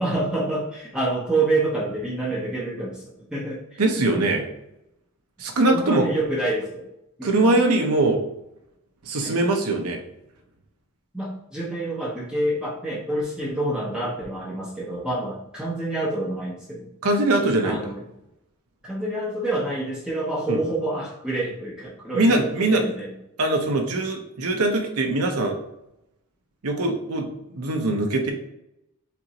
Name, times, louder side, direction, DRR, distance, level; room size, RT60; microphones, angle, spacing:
voice 1, 0.0-3.8 5.7-6.9 7.2-7.6 9.2-9.3 11.1-16.9 17.6-18.0 18.8-23.1, right 2 dB, 5° right, -5 dB, 0.7 m, -27 dB
voice 2, 3.8-4.5 5.4-6.0 7.2-8.2 9.0-10.0 17.0-17.8 20.5-20.6 22.1-22.8 23.4-25.6 26.6-28.3, right 2 dB, 90° right, 3 dB, 0.8 m, -22 dB
6.9 x 2.6 x 2.9 m, 0.85 s
head